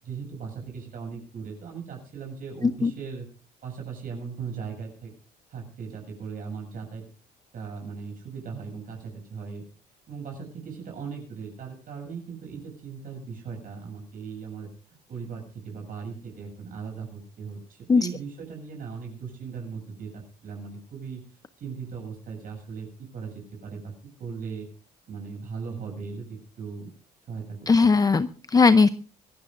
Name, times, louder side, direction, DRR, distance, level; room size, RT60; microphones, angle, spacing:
voice 1, 0.0-3.3 3.6-5.1 5.5-7.1 7.5-9.6 10.1-14.7 15.1-23.9 24.2-24.7 25.1-26.9 27.3-27.7, right 5 dB, 55° right, 1 dB, 7.6 m, -38 dB
voice 2, 27.7-28.9, left 4 dB, 20° left, 12 dB, 0.7 m, -19 dB
25.0 x 15.5 x 2.6 m, 0.39 s
cardioid pair, 110°, 17 cm